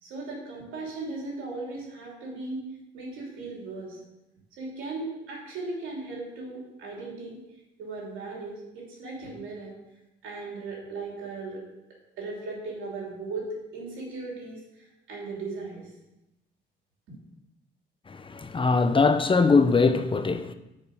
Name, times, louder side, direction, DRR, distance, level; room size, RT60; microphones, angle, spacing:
voice 1, 0.0-2.7 2.9-4.0 4.6-7.4 7.8-9.7 10.2-11.6 12.2-15.9 17.1-17.2, right 3 dB, 85° right, 3.0 m, -37 dB
voice 2, 18.1-20.5, left 4 dB, 25° left, 0.6 m, -22 dB
8.3 x 5.3 x 6.3 m
cardioid pair, 90°, 20 cm